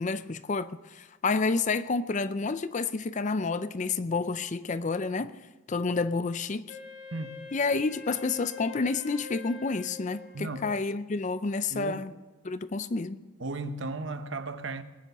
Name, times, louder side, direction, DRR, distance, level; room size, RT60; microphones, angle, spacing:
voice 1, 0.0-5.3 5.7-6.8 7.5-12.1 12.4-13.2, left 4 dB, 35° left, 0.4 m, -29 dB
Wind instrument woodwind instrument, 6.7-10.9, left 5 dB, 55° left, 2.3 m, -45 dB
voice 2, 7.1-7.5 10.3-10.8 11.7-12.1 13.4-14.8, right 2 dB, 55° right, 0.9 m, -35 dB
20.5 x 9.2 x 6.7 m
head